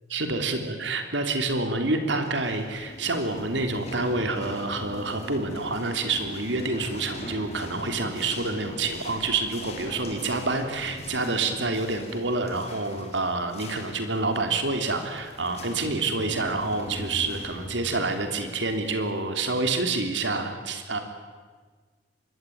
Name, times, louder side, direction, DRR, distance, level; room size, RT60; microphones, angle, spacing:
voice 1, 0.1-21.0, right 3 dB, 75° right, 6 dB, 3.4 m, -28 dB
sound 1, 2.1-19.5, left 1 dB, 35° left, 4.1 m, -41 dB
25.0 x 21.5 x 9.5 m, 1.5 s
head